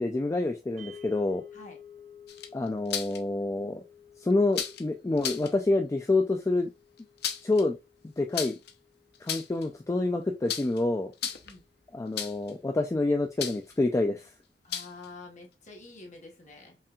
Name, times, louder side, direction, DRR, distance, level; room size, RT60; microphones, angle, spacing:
voice 1, 0.0-1.4 2.5-3.8 4.2-6.7 7.4-7.8 8.2-8.5 9.2-11.1 11.9-14.3, left 2 dB, 15° left, 0.3 m, -27 dB
sound 1, 0.8-11.1, left 6 dB, 55° right, 2.5 m, -53 dB
sound 2, 2.3-3.2 4.5-4.8 5.2-5.5 7.0-7.6 8.3-8.7 9.1-9.7 10.5-10.8 11.1-11.6 12.2-12.5 13.4-13.7 14.7-15.1, left 9 dB, 65° left, 0.6 m, -34 dB
voice 2, 11.2-11.6 14.6-16.8, left 3 dB, 45° left, 1.3 m, -48 dB
5.4 x 2.5 x 2.3 m
head